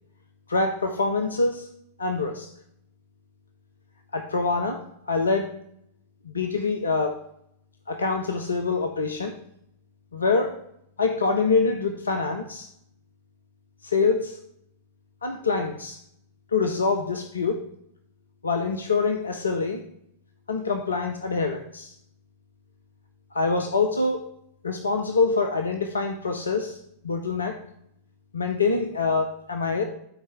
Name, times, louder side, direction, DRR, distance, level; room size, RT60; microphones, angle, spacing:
voice 1, 0.5-1.7 2.0-2.5 4.1-4.8 5.1-5.5 6.3-7.2 7.9-9.3 10.1-10.5 11.0-12.7 13.8-14.3 15.2-16.0 16.5-17.6 18.4-19.8 20.5-21.9 23.3-24.2 24.6-26.8 27.0-27.6 28.3-29.8, left 4 dB, 75° left, 5 dB, 0.6 m, -25 dB
12.0 x 4.4 x 3.5 m, 0.73 s
figure-of-eight pair, 90°, 0 cm